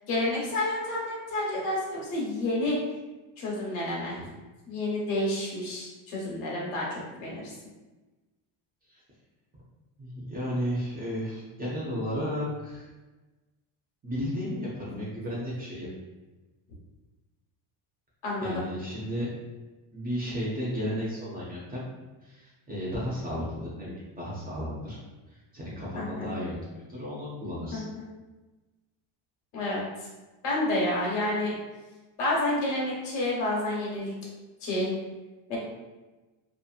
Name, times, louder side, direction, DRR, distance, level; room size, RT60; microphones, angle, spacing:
voice 1, 0.1-2.8 3.4-4.2 4.7-7.5 18.2-18.6 25.9-26.3 27.7-28.0 29.5-29.8 30.4-31.5 32.2-34.1 34.6-34.9 35.5-35.6, left 1 dB, 80° left, -4 dB, 1.2 m, -29 dB
voice 2, 10.0-12.9 14.0-15.9 18.4-19.3 19.9-21.9 22.2-25.0 25.3-27.8, equal, 20° right, -7 dB, 0.3 m, -33 dB
2.7 x 2.4 x 2.4 m, 1.2 s
cardioid pair, 145°, 50 cm